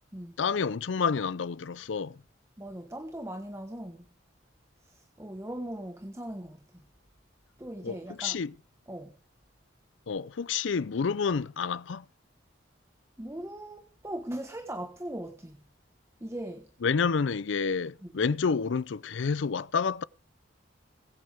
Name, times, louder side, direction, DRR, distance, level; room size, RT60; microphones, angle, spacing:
voice 1, 0.4-2.2 7.8-8.5 10.1-12.0 16.8-20.0, left 5 dB, 65° left, 0.5 m, -29 dB
voice 2, 2.6-4.1 4.8-6.9 7.6-8.4 8.9-9.1 13.2-15.6 16.2-16.7 18.0-18.1, right 1 dB, 15° right, 1.3 m, -39 dB
22.5 x 8.7 x 3.5 m
head